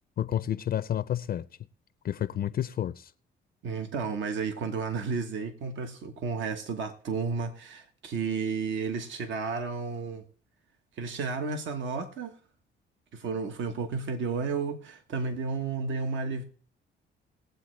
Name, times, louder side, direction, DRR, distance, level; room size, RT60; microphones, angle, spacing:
voice 1, 0.2-1.5 2.0-3.1, left 11 dB, 50° left, 0.4 m, -30 dB
voice 2, 3.6-10.2 11.0-12.3 13.1-16.4, right 4 dB, 70° right, 1.2 m, -32 dB
20.0 x 7.9 x 3.2 m
cardioid pair, 90°, 20 cm